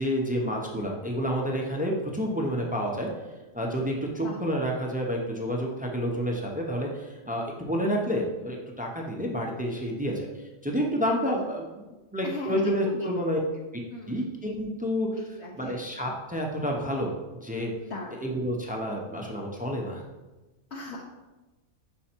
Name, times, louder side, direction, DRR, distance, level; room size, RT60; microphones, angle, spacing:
voice 1, 0.0-3.1 3.5-13.4 14.1-15.1 15.6-17.1 17.4-17.7 18.2-20.0, equal, 15° right, 0 dB, 0.3 m, -29 dB
voice 2, 12.2-13.1 13.3-13.5 13.9-14.3 15.2-15.8 17.8-18.2 20.7-21.0, left 3 dB, 60° left, -1 dB, 0.9 m, -38 dB
5.3 x 4.5 x 4.4 m, 1.1 s
omnidirectional pair, 1.4 m